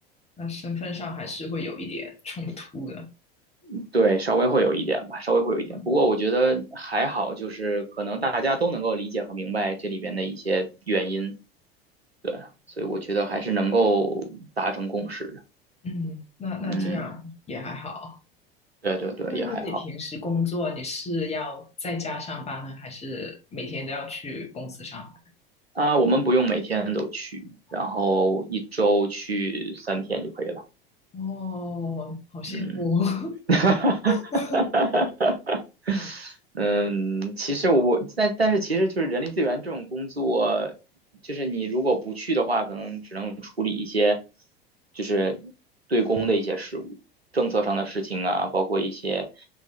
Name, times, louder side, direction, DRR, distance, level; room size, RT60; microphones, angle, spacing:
voice 1, 0.4-3.1 5.7-5.9 15.8-18.2 19.3-25.1 31.1-33.4 34.1-34.7, left 3 dB, 20° left, 1.5 m, -32 dB
voice 2, 3.6-11.3 12.2-12.5 12.8-15.4 16.6-17.0 18.8-19.8 25.7-30.6 32.5-32.8 33.5-34.2 34.5-35.6 35.8-40.7 41.2-44.2 44.9-45.5 45.9-46.8 47.3-49.5, right 2 dB, 90° right, 1.0 m, -25 dB
3.6 x 3.5 x 4.2 m
figure-of-eight pair, 80°, 30 cm